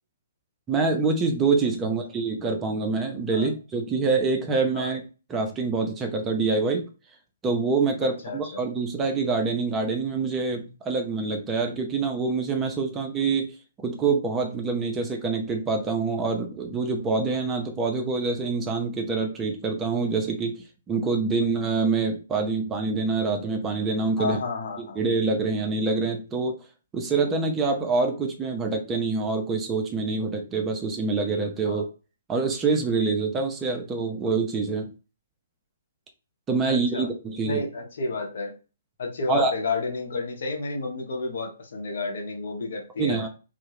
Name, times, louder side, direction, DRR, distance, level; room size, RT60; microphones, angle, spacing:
voice 1, 0.7-5.0 5.3-6.9 7.4-13.5 13.8-20.6 20.9-24.4 24.8-26.6 26.9-31.9 32.3-34.9 36.5-37.7 39.3-39.5 43.0-43.3, right 4 dB, 15° right, 3 dB, 0.5 m, -26 dB
voice 2, 8.0-8.6 24.2-25.0 31.6-31.8 36.7-37.1 37.4-38.5 39.0-43.3, left 3 dB, 60° left, 2 dB, 0.8 m, -31 dB
2.2 x 2.1 x 3.1 m, 0.32 s
figure-of-eight pair, 130°, 0 cm